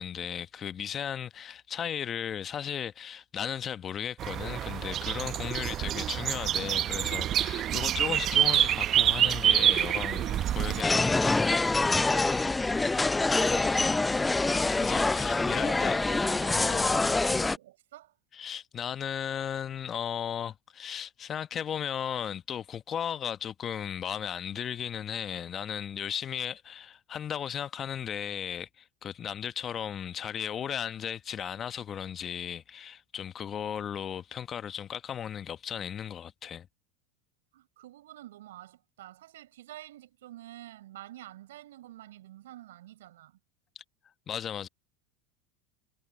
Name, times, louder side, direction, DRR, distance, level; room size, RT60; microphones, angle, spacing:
voice 1, 0.0-11.7 14.8-16.0 16.5-17.1 18.3-36.7 44.3-44.7, left 9 dB, 35° left, 1.2 m, -36 dB
sound 1, 4.2-10.8, right 11 dB, 40° right, 0.9 m, -27 dB
sound 2, 10.8-17.6, left 3 dB, 10° left, 0.4 m, -25 dB
voice 2, 15.5-18.2 37.5-43.4, right 14 dB, 80° right, 6.8 m, -49 dB
hypercardioid pair, 95°, 0 cm